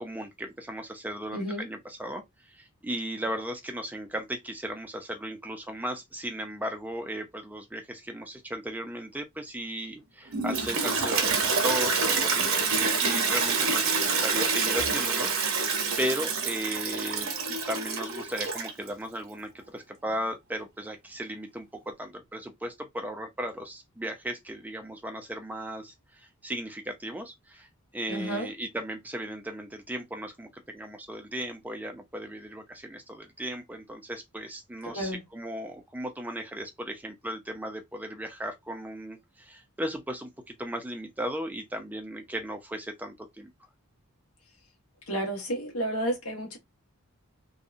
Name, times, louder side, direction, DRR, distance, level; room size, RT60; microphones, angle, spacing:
voice 1, 0.0-27.7 27.9-43.5, equal, 10° right, 0.4 m, -36 dB
voice 2, 1.3-1.7 28.1-28.5 34.9-35.2 45.1-46.6, right 1 dB, 80° left, 1.2 m, -31 dB
Toilet flush, 10.3-18.9, right 4 dB, 65° right, 0.7 m, -27 dB
2.7 x 2.1 x 2.5 m
head